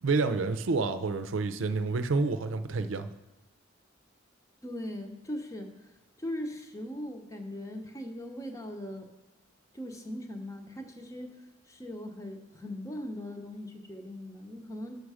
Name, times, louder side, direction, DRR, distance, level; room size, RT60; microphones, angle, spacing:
voice 1, 0.0-3.1, right 3 dB, 85° right, 9 dB, 0.5 m, -28 dB
voice 2, 4.6-5.7 6.2-9.1 9.7-15.0, left 1 dB, 15° left, 4 dB, 0.8 m, -39 dB
6.4 x 6.4 x 4.9 m, 1.1 s
head